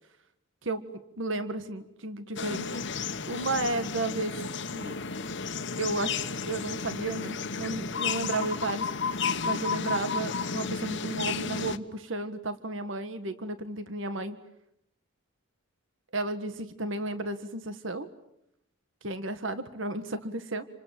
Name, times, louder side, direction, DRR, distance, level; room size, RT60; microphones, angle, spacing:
voice 1, 1.2-2.8 3.3-4.4 4.7-5.0 5.8-8.9 9.4-14.4 16.1-18.1 19.0-20.7, right 2 dB, 65° right, 11 dB, 1.7 m, -33 dB
sound 1, 2.4-11.8, left 5 dB, 60° left, 1.2 m, -33 dB
28.0 x 26.5 x 7.7 m, 0.79 s
head